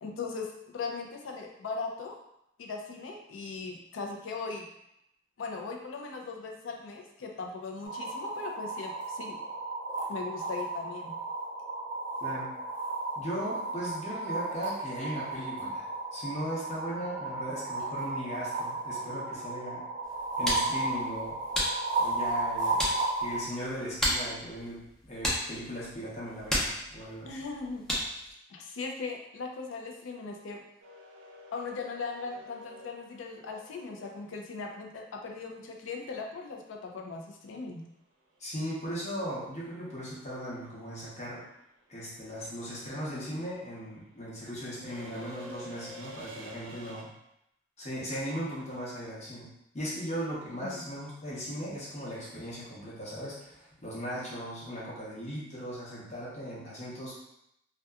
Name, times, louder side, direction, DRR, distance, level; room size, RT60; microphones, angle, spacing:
voice 1, 0.0-2.2 2.6-4.7 5.4-9.4 10.1-11.2 27.2-30.6 31.5-37.8 50.6-50.8, left 4 dB, 85° left, 2 dB, 0.4 m, -39 dB
sound 1, 7.8-23.4, right 2 dB, 45° right, 0.8 m, -34 dB
voice 2, 13.2-15.8 16.1-19.9 20.4-21.4 22.0-27.4 38.4-41.4 41.9-47.1 47.8-57.2, equal, 35° left, -7 dB, 0.8 m, -38 dB
sound 2, 20.0-28.3, equal, 5° left, 0.5 m, -35 dB
sound 3, 30.8-34.9 37.3-37.4 38.7-39.0 39.2-47.0, equal, 80° right, 0.5 m, -49 dB
2.7 x 2.2 x 2.3 m, 0.80 s
head